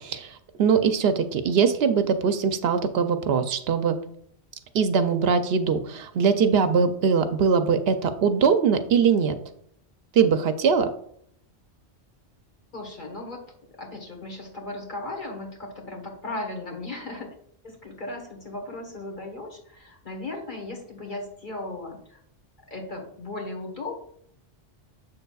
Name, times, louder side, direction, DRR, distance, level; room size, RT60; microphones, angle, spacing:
voice 1, 0.0-4.0 4.7-9.4 10.1-10.9, right 6 dB, 70° right, 9 dB, 0.8 m, -22 dB
voice 2, 12.7-13.4 13.8-17.3 17.6-22.2 22.7-24.0, left 2 dB, 45° left, 1 dB, 1.5 m, -36 dB
7.1 x 6.6 x 2.3 m, 0.66 s
omnidirectional pair, 1.1 m